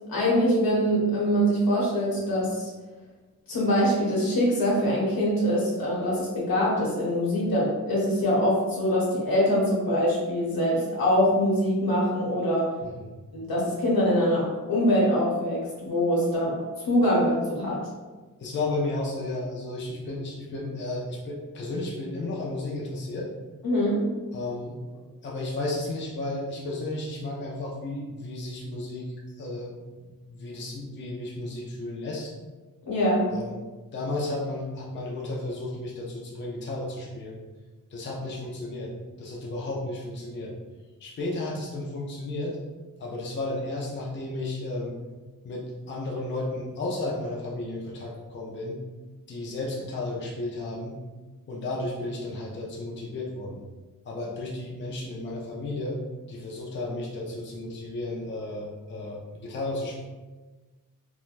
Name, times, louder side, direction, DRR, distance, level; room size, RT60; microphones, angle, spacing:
voice 1, 0.1-2.7 3.5-12.7 13.3-17.8 23.6-24.0 32.9-33.3, equal, 80° left, -5 dB, 1.1 m, -24 dB
voice 2, 18.4-23.3 24.3-24.8 25.2-32.3 33.3-33.6 33.9-37.4 37.9-38.9 39.2-40.5 41.0-42.6 43.0-44.9 45.4-48.8 49.3-51.0 51.5-53.6 54.0-56.0 56.3-60.0, left 2 dB, 35° left, -3 dB, 0.4 m, -33 dB
3.1 x 2.1 x 2.4 m, 1.3 s
wide cardioid pair, 140°, 34 cm